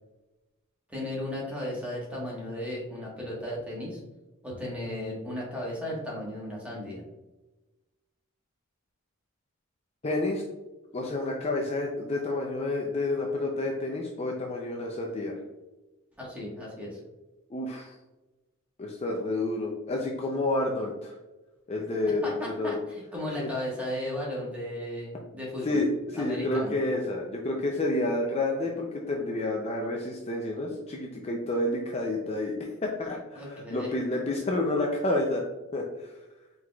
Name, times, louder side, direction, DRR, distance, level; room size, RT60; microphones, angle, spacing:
voice 1, 0.9-4.0 4.4-7.0 16.2-17.0 22.2-25.8 26.1-26.8 33.3-34.0, left 1 dB, 5° right, -5 dB, 1.3 m, -35 dB
voice 2, 10.0-10.4 10.9-15.4 17.5-17.9 18.8-21.2 21.7-22.2 22.6-22.7 23.4-23.5 25.6-25.9 26.1-35.4 35.7-36.1, left 2 dB, 30° left, 0 dB, 0.4 m, -29 dB
4.6 x 3.9 x 2.3 m, 1.1 s
head